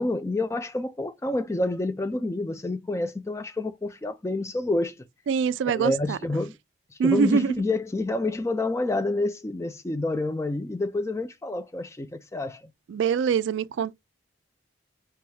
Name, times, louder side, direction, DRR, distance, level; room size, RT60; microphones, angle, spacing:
voice 1, 0.0-5.0 5.7-6.6 7.0-12.6, left 2 dB, 15° left, 0.4 m, -28 dB
voice 2, 5.3-6.2 7.0-7.5 12.9-13.9, right 6 dB, 70° right, 0.3 m, -24 dB
4.7 x 2.3 x 2.8 m
head